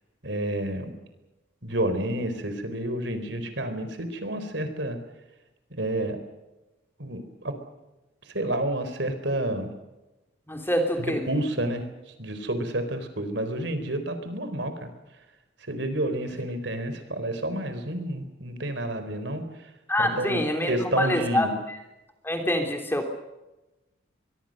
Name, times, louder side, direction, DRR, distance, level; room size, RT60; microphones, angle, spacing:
voice 1, 0.2-0.9 1.6-5.0 5.7-6.2 7.0-7.6 8.3-9.7 11.0-11.8 12.2-14.9 15.7-19.5 20.0-21.6, right 1 dB, 60° right, 9 dB, 4.2 m, -29 dB
voice 2, 10.5-11.2 19.9-21.5 22.2-23.1, left 1 dB, 10° left, 4 dB, 3.2 m, -25 dB
24.5 x 23.0 x 6.6 m, 1.0 s
head